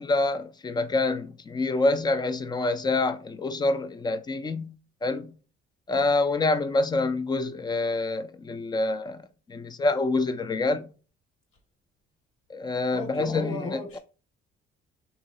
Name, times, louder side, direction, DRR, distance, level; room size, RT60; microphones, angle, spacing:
voice 1, 0.0-4.8 5.0-5.3 5.9-10.9 12.5-13.8, left 2 dB, 20° left, 0.3 m, -26 dB
voice 2, 12.9-14.0, equal, 85° left, 1.3 m, -36 dB
3.0 x 2.8 x 2.8 m
cardioid pair, 115°, 21 cm